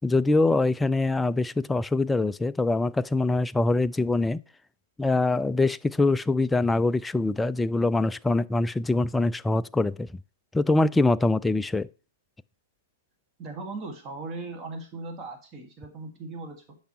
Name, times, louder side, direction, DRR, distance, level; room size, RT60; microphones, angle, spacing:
voice 1, 0.0-4.4 5.0-10.1 10.5-11.9, left 2 dB, 5° left, 0.3 m, -24 dB
voice 2, 13.4-16.8, right 3 dB, 25° right, 2.0 m, -38 dB
10.0 x 5.5 x 3.1 m
figure-of-eight pair, 110°, 0 cm